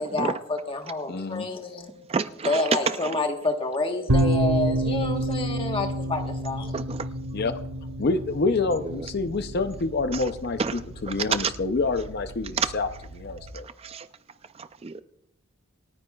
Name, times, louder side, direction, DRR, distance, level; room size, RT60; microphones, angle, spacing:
voice 1, 0.0-1.9 2.4-6.7, left 2 dB, 25° left, 1.2 m, -28 dB
voice 2, 1.1-1.5 7.3-7.5 8.0-12.9 13.1-13.7, left 3 dB, 45° left, 0.5 m, -27 dB
voice 3, 2.1-3.1 6.7-7.1 8.8-9.1 10.1-10.2 10.6-10.8 11.1-11.5 12.5-12.7 13.8-14.1 14.6-15.0, right 5 dB, 25° right, 0.3 m, -28 dB
sound 1, 4.1-13.5, right 1 dB, 85° right, 1.2 m, -30 dB
28.0 x 9.6 x 2.3 m
head